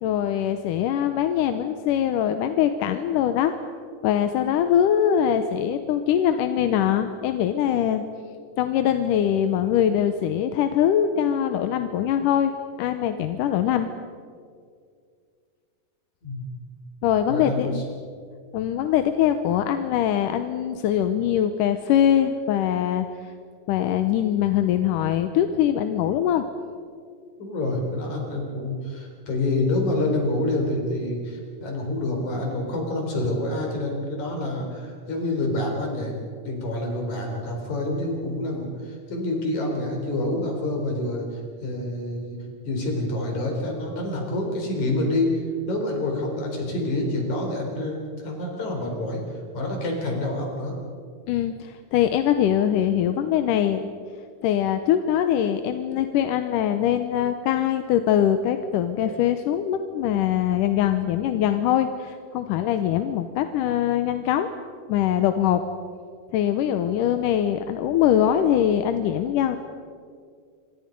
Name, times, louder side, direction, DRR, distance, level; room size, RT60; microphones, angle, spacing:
voice 1, 0.0-3.5 4.0-8.0 8.6-12.5 12.8-13.9 17.0-17.8 18.5-23.1 23.7-26.4 51.3-53.9 54.4-64.5 64.9-65.6 66.3-69.6, left 10 dB, 90° left, 8 dB, 2.5 m, -22 dB
voice 2, 17.3-17.8 27.4-36.2 36.4-42.4 42.7-50.8, left 1 dB, 65° left, 1 dB, 5.5 m, -27 dB
27.0 x 25.0 x 5.3 m, 2.2 s
omnidirectional pair, 3.7 m